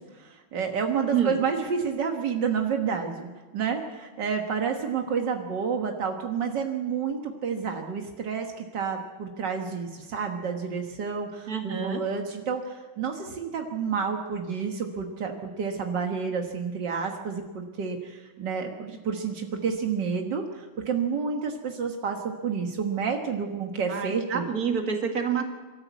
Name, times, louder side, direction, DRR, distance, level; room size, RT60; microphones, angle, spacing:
voice 1, 0.1-3.3 3.5-24.4, right 6 dB, 70° right, 3 dB, 1.0 m, -30 dB
voice 2, 1.1-1.4 11.5-12.0 23.9-25.4, right 7 dB, 35° right, 4 dB, 1.7 m, -28 dB
25.5 x 13.5 x 8.2 m, 1.3 s
omnidirectional pair, 4.2 m